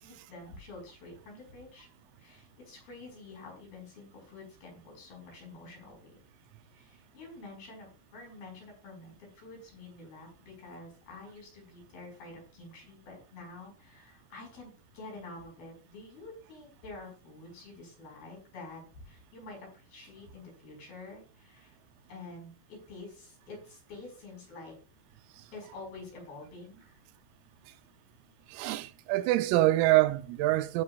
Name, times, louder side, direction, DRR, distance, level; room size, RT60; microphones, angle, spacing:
voice 1, 0.0-1.9 2.2-6.2 6.7-21.8 22.1-24.8 25.5-27.0, left 3 dB, 45° left, 6.6 m, -48 dB
voice 2, 28.5-30.8, right 16 dB, 90° right, 3.4 m, -25 dB
16.0 x 7.7 x 2.4 m
omnidirectional pair, 5.9 m